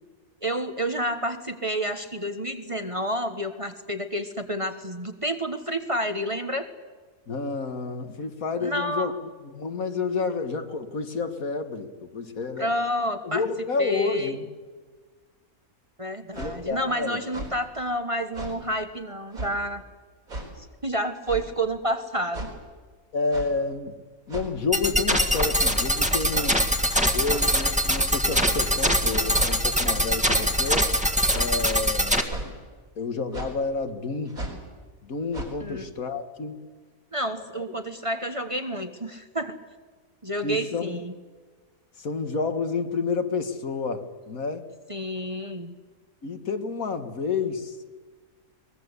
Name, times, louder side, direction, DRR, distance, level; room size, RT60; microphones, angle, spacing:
voice 1, 0.4-6.7 8.6-9.1 12.6-13.4 13.8-14.4 16.0-19.8 20.6-22.5 35.6-35.9 37.1-39.6 40.2-41.1 44.9-45.8, equal, 25° right, 7 dB, 1.2 m, -29 dB
voice 2, 7.3-9.1 9.4-12.7 13.2-14.5 16.3-17.2 23.1-24.0 24.3-26.7 27.1-30.9 31.3-32.4 33.0-34.4 35.0-36.7 37.5-37.6 40.4-41.0 42.0-44.7 46.2-47.8, left 4 dB, 70° left, 8 dB, 2.0 m, -30 dB
sound 1, 16.3-16.5 17.2-17.5 18.3-18.6 19.3-19.5 20.3-20.5 21.3-21.5 22.3-22.5 23.3-23.5 24.3-24.6 25.3-25.5 26.3-26.5 27.3-27.5 28.3-28.5 29.3-29.5 30.3-30.5 31.3-31.6 32.3-32.5 33.3-33.5 34.3-34.6 35.3-35.5, right 1 dB, 70° right, 5.0 m, -35 dB
sound 2, 24.7-32.2, equal, 5° right, 1.7 m, -23 dB
23.0 x 20.5 x 8.2 m, 1.4 s
omnidirectional pair, 1.5 m